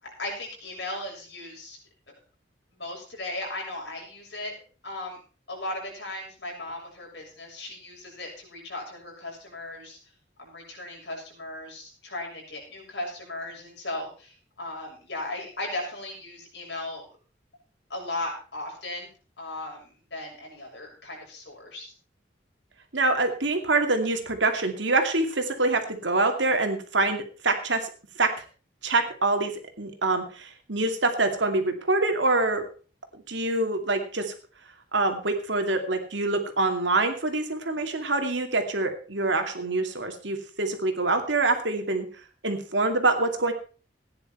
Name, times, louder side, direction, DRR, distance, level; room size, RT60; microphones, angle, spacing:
voice 1, 0.0-1.8 2.1-2.2 2.7-4.6 4.8-5.2 5.5-10.0 10.4-17.1 17.9-19.1 19.4-21.9, left 2 dB, 65° left, -1 dB, 6.9 m, -37 dB
voice 2, 22.9-27.9 28.2-28.3 28.8-29.5 29.8-32.6 33.3-34.3 34.9-42.1 42.4-43.5, right 2 dB, 80° right, 5 dB, 2.5 m, -25 dB
16.0 x 10.0 x 4.5 m, 0.38 s
head